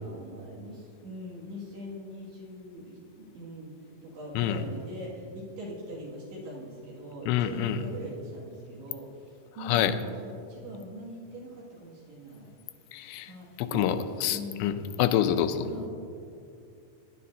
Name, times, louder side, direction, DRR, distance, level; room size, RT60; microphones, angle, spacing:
voice 1, 0.0-3.8 4.0-10.1 10.5-12.5 13.3-13.9 14.3-14.7 15.6-15.9, equal, 75° right, -6 dB, 4.3 m, -41 dB
voice 2, 7.3-7.8 9.6-10.0 12.9-13.3 13.6-14.0 14.2-15.7, left 10 dB, 90° left, 10 dB, 2.8 m, -26 dB
19.5 x 11.0 x 2.8 m, 2.6 s
omnidirectional pair, 4.9 m